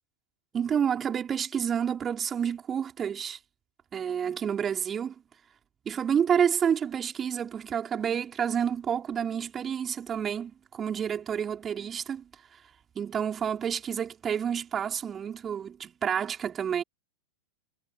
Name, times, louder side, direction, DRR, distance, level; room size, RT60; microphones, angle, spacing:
voice 1, 0.5-3.4 3.9-5.1 5.9-12.3 13.0-16.8, right 8 dB, 25° right, 3.5 m, -29 dB
figure-of-eight pair, 90°, 0 cm